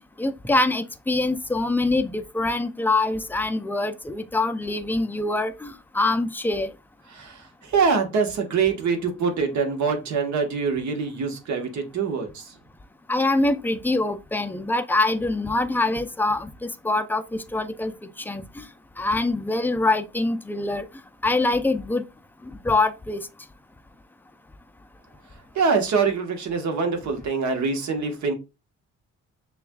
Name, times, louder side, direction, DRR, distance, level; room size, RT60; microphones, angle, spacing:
voice 1, 0.2-6.7 13.1-17.9 18.3-18.6 19.0-20.9 21.2-22.0 22.6-23.2, left 2 dB, 5° left, 0.4 m, -24 dB
voice 2, 7.1-12.6 25.3-28.3, right 5 dB, 70° right, 1.3 m, -24 dB
6.8 x 2.4 x 2.3 m
cardioid pair, 90°, 30 cm